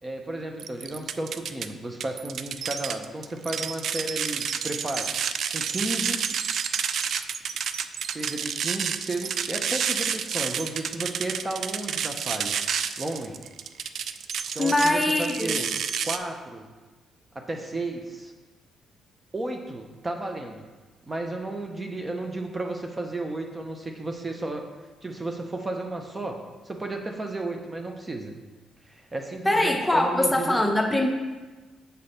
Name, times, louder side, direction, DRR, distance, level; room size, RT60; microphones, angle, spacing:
voice 1, 0.0-5.1 5.5-6.2 8.1-12.6 13.0-13.4 14.5-15.7 16.0-16.6 17.3-18.3 19.3-20.7 21.1-24.6 25.0-26.4 26.6-28.3 28.8-30.6, right 2 dB, 25° right, 3 dB, 0.7 m, -33 dB
sound 1, 0.6-1.7 2.0-16.2, right 7 dB, 65° right, 0.3 m, -29 dB
voice 2, 14.6-15.5 29.4-31.1, left 1 dB, 10° left, 2 dB, 0.8 m, -22 dB
6.8 x 4.0 x 5.0 m, 1.3 s
cardioid pair, 90°, 0 cm